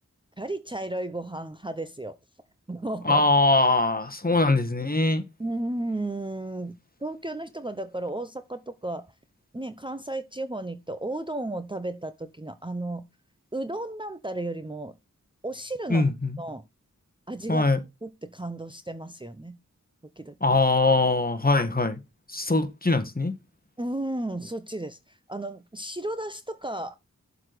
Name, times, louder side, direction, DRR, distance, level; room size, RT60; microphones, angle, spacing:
voice 1, 0.4-2.2 2.7-3.3 4.3-4.4 5.4-9.1 9.5-13.1 13.5-14.9 15.4-16.1 16.4-16.6 17.3-17.7 18.0-19.6 20.2-20.6 23.8-27.0, right 1 dB, 15° right, 0.6 m, -34 dB
voice 2, 3.0-5.2 15.9-16.4 17.5-17.8 20.4-22.0 22.3-23.3, left 2 dB, 30° left, 1.3 m, -22 dB
7.3 x 4.0 x 6.6 m
wide cardioid pair, 55°, 31 cm